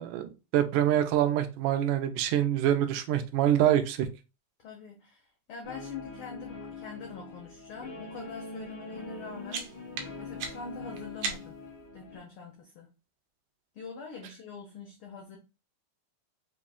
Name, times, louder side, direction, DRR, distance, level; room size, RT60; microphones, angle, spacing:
voice 1, 0.0-4.1, right 11 dB, 90° right, 8 dB, 2.2 m, -25 dB
voice 2, 4.6-9.7 10.2-11.6 11.9-12.9 13.7-15.4, left 4 dB, 85° left, 1 dB, 1.2 m, -44 dB
Guitar, 5.6-12.2, left 3 dB, 45° left, 0.5 m, -43 dB
sound 1, 9.1-11.8, right 5 dB, 70° right, 1.7 m, -39 dB
5.2 x 2.5 x 3.4 m, 0.29 s
omnidirectional pair, 3.6 m